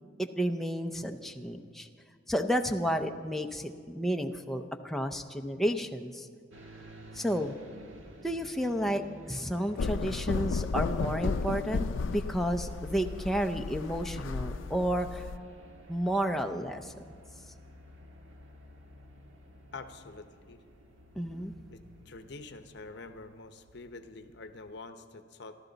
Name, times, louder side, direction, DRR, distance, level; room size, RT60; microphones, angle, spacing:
voice 1, 0.2-1.9 2.3-6.3 7.1-7.6 8.2-15.2 15.9-16.9 21.2-21.5, equal, ahead, 4 dB, 0.6 m, -31 dB
sound 1, 6.5-24.8, equal, 90° right, 1.5 m, -52 dB
sound 2, 9.8-15.4, left 4 dB, 80° left, 0.4 m, -33 dB
voice 2, 19.7-20.6 21.7-21.8 22.0-25.6, left 3 dB, 60° left, 8 dB, 0.9 m, -46 dB
28.0 x 12.0 x 4.0 m, 2.1 s
head